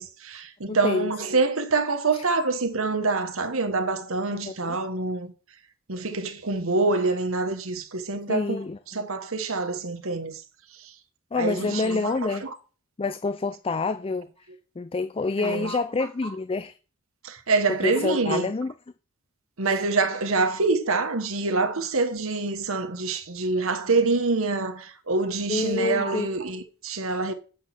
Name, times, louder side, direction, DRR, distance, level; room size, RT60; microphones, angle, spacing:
voice 1, 0.0-5.3 5.9-8.6 8.9-10.4 10.8-10.9 11.4-12.5 15.4-15.8 17.2-18.5 19.6-27.3, right 3 dB, 80° right, 1.3 m, -26 dB
voice 2, 0.7-1.1 2.1-2.2 4.3-4.8 8.3-8.8 11.3-12.5 13.0-14.3 14.8-16.7 17.8-18.7 19.6-19.8 25.5-26.3, left 3 dB, 25° left, 0.4 m, -27 dB
7.2 x 6.2 x 7.4 m
head